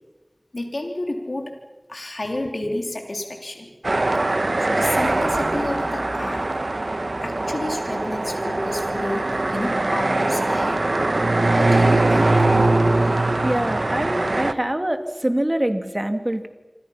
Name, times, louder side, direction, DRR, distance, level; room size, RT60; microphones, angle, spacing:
voice 1, 0.5-1.5 1.9-3.7 4.7-6.5 7.2-10.9 11.5-12.7, left 1 dB, 90° left, 2 dB, 3.2 m, -30 dB
sound 1, 3.8-14.5, right 2 dB, 85° right, 1.0 m, -21 dB
voice 2, 13.4-16.5, right 1 dB, 30° right, 7 dB, 2.4 m, -25 dB
27.0 x 26.5 x 5.8 m, 1.1 s
wide cardioid pair, 45°, 0 cm